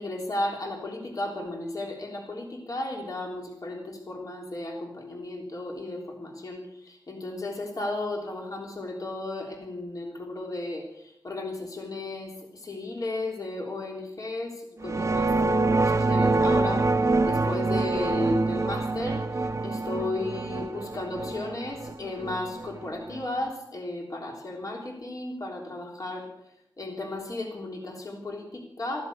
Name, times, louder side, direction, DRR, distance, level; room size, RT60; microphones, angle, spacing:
voice 1, 0.0-16.9 17.2-26.3 26.8-29.1, left 2 dB, 45° left, 0 dB, 3.4 m, -34 dB
sound 1, 14.8-23.5, right 3 dB, 35° right, 1.0 m, -26 dB
14.5 x 14.0 x 6.7 m, 0.80 s
wide cardioid pair, 105°, 8 cm